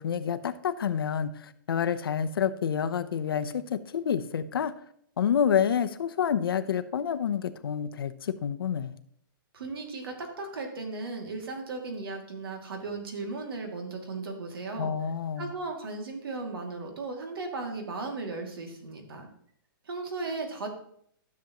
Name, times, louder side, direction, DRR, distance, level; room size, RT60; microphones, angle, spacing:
voice 1, 0.0-4.7 5.2-9.0 14.8-15.5, left 8 dB, 85° left, 11 dB, 0.7 m, -28 dB
voice 2, 9.5-14.9 15.4-19.3 19.8-20.7, right 3 dB, 85° right, 3 dB, 2.4 m, -36 dB
13.0 x 7.1 x 3.0 m, 0.66 s
hypercardioid pair, 160°, 12 cm